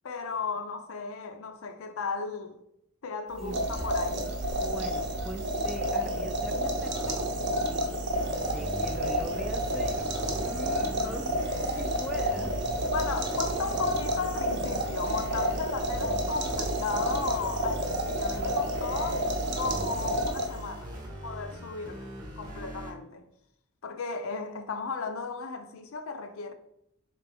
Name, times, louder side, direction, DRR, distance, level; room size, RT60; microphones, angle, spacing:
voice 1, 0.0-2.6 3.0-4.3 12.9-20.9 21.2-23.2 23.8-26.5, left 4 dB, 75° left, 0.5 m, -35 dB
voice 2, 3.4-3.7 4.2-4.3 4.6-7.3 7.7-7.9 8.4-12.5 13.2-13.3, right 1 dB, ahead, 0.3 m, -41 dB
sound 1, 3.4-20.8, equal, 50° right, 0.7 m, -30 dB
sound 2, 8.1-22.9, equal, 20° right, 0.8 m, -41 dB
4.1 x 3.3 x 3.4 m
head